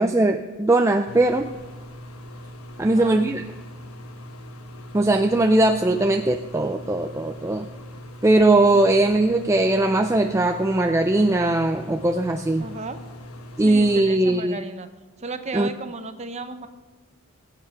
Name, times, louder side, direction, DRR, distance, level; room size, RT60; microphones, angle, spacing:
voice 1, 0.0-1.5 2.8-3.4 4.9-7.7 8.2-12.7 13.6-14.6 15.5-15.7, right 2 dB, 15° right, 5 dB, 0.4 m, -20 dB
sound 1, 1.1-14.0, equal, 85° left, 1.2 m, -41 dB
voice 2, 2.8-3.2 12.6-13.0 13.6-14.9 15.2-16.7, right 3 dB, 30° right, 9 dB, 0.8 m, -34 dB
20.0 x 8.2 x 5.8 m, 1.3 s
head